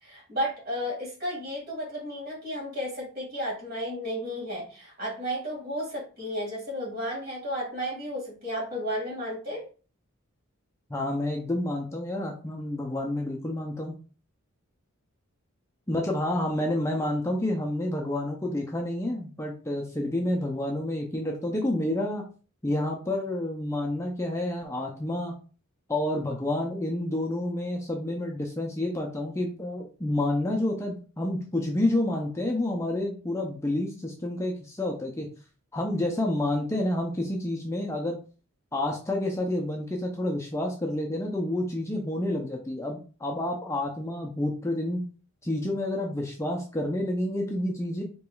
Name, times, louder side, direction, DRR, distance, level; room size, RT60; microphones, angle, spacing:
voice 1, 0.0-9.7, equal, 45° right, -3 dB, 2.0 m, -33 dB
voice 2, 10.9-14.0 15.9-22.2 22.6-25.3 25.9-35.3 35.7-38.2 38.7-45.0 45.4-48.0, left 1 dB, 15° left, 0 dB, 0.5 m, -29 dB
4.7 x 3.0 x 2.3 m, 0.37 s
head